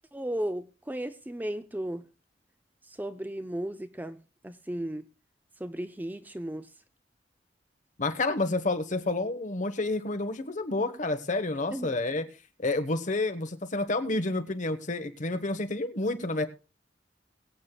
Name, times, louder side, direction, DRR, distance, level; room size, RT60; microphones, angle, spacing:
voice 1, 0.1-2.1 3.0-4.2 4.4-5.0 5.6-6.7 11.7-11.9, right 1 dB, 10° right, 10 dB, 0.5 m, -35 dB
voice 2, 8.0-12.3 12.6-16.5, left 2 dB, 45° left, 8 dB, 1.2 m, -29 dB
22.5 x 8.5 x 2.3 m, 0.31 s
head